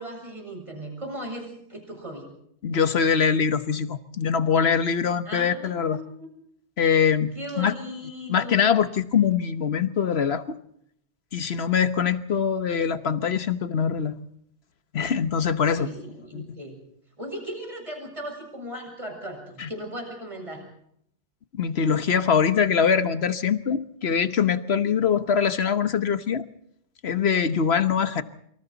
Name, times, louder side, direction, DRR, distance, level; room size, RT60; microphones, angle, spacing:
voice 1, 0.0-2.3 5.3-6.3 7.3-8.6 15.5-16.8 17.2-20.6, equal, 25° right, 2 dB, 7.5 m, -37 dB
voice 2, 2.6-6.0 6.8-7.7 8.3-10.6 11.3-14.1 14.9-15.9 16.3-16.5 19.6-19.7 21.5-26.5 27.0-28.2, left 7 dB, 60° left, 11 dB, 1.4 m, -23 dB
27.5 x 25.5 x 4.1 m, 0.68 s
omnidirectional pair, 1.2 m